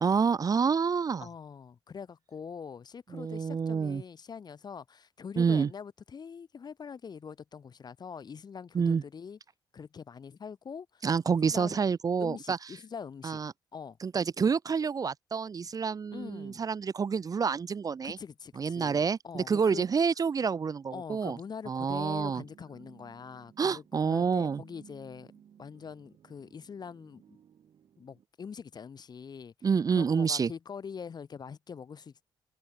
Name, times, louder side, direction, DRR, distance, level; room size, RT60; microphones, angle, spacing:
voice 1, 0.0-1.3 3.1-4.0 5.4-5.7 8.7-9.0 11.0-12.6 13.2-13.5 14.0-18.2 18.6-21.4 21.7-22.4 23.6-24.6 29.6-30.5, right 6 dB, 40° right, 0.5 m, -28 dB
voice 2, 1.2-9.4 9.7-11.8 12.2-13.4 13.7-14.0 16.1-16.6 18.0-19.9 20.9-25.3 25.6-27.4 28.0-29.5 30.0-32.1, left 6 dB, 50° left, 0.8 m, -44 dB
sound 1, 21.9-28.3, right 9 dB, 70° right, 7.4 m, -58 dB
supercardioid pair, 50°, 9 cm